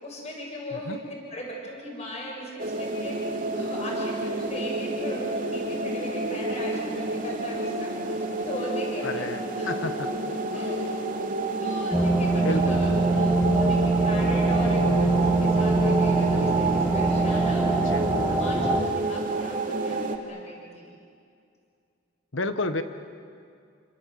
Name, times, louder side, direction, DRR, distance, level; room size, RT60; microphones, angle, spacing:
voice 1, 0.0-9.3 9.6-10.1 10.5-11.3 11.6-20.9, equal, 35° left, -2 dB, 7.4 m, -38 dB
sound 1, 2.6-20.2, right 2 dB, 45° right, 2.9 m, -29 dB
voice 2, 9.0-9.9 12.4-12.9 17.8-18.1 22.3-22.8, left 2 dB, 75° left, 8 dB, 1.5 m, -31 dB
sound 2, 11.9-18.8, right 3 dB, 5° right, 1.7 m, -23 dB
29.0 x 26.0 x 7.9 m, 2.3 s
head